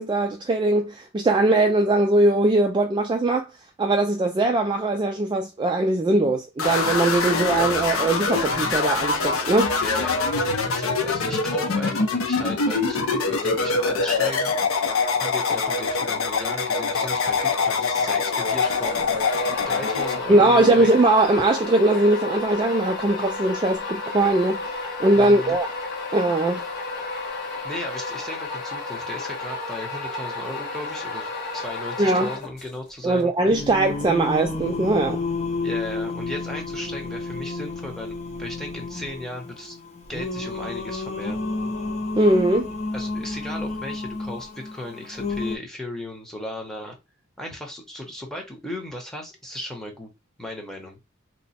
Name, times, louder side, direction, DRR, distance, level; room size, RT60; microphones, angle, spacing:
voice 1, 0.0-3.5 3.8-9.7 20.3-24.7 25.0-25.7 26.1-26.6 32.0-32.3 33.0-35.2 42.2-42.7, right 2 dB, 20° right, 0.3 m, -20 dB
sound 1, 6.6-20.2, left 4 dB, 70° left, 0.7 m, -24 dB
voice 2, 9.8-14.9 15.2-19.1 19.7-20.9 25.1-25.6 27.6-33.3 35.6-39.8 40.1-41.4 42.9-47.0 47.4-50.1 50.4-51.0, left 1 dB, ahead, 0.8 m, -36 dB
sound 2, 18.6-32.9, left 3 dB, 50° left, 1.3 m, -32 dB
Singing, 33.5-45.6, left 3 dB, 30° left, 0.8 m, -31 dB
3.0 x 2.1 x 4.1 m
head